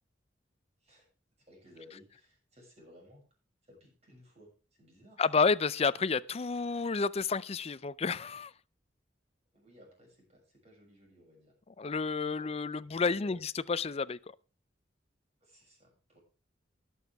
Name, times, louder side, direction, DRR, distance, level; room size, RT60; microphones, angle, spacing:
voice 1, 1.4-3.2 3.6-4.5 4.8-5.4 9.5-11.5 12.3-13.4 15.4-16.2, left 1 dB, 35° right, 7.0 m, -58 dB
voice 2, 5.2-8.5 11.8-14.2, left 4 dB, 35° left, 0.5 m, -30 dB
21.0 x 7.2 x 3.5 m
head